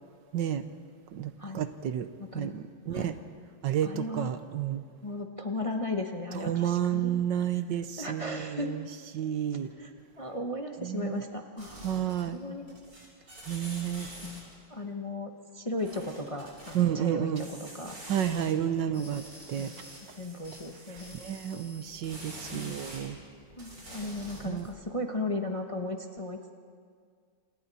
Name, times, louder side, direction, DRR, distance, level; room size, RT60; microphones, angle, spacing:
voice 1, 0.3-0.7 1.1-2.1 2.3-3.2 3.6-4.8 6.4-8.8 9.1-9.7 10.8-11.2 11.8-12.4 13.5-14.1 16.7-17.4 18.1-19.2 19.5-19.7 21.2-23.2 24.5-24.6, right 10 dB, 70° right, 10 dB, 1.5 m, -30 dB
voice 2, 2.2-2.6 2.9-3.1 3.8-4.3 5.0-7.2 7.7-8.8 9.5-11.9 12.3-12.8 14.2-18.0 18.3-19.2 19.6-19.8 20.1-21.2 22.5-22.8 23.6-26.5, left 2 dB, 20° left, 3 dB, 1.0 m, -36 dB
sound 1, 11.6-12.4 12.7-14.6 15.8-16.8 17.4-18.5 18.9-23.1 23.5-24.8, right 1 dB, 45° right, 6.2 m, -46 dB
28.5 x 28.0 x 4.2 m, 2.1 s
omnidirectional pair, 2.1 m